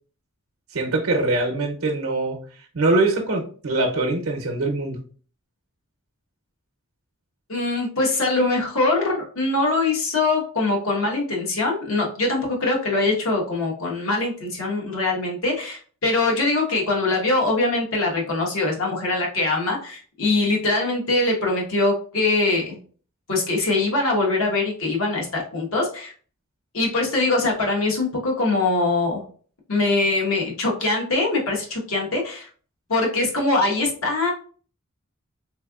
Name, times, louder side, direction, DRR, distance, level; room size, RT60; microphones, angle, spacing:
voice 1, 0.7-5.0, right 2 dB, 75° right, 1 dB, 0.7 m, -23 dB
voice 2, 7.5-22.8 23.3-26.1 26.7-29.2 29.7-32.5 32.9-34.3, left 2 dB, 70° left, -1 dB, 1.2 m, -22 dB
3.5 x 3.3 x 2.3 m, 0.43 s
head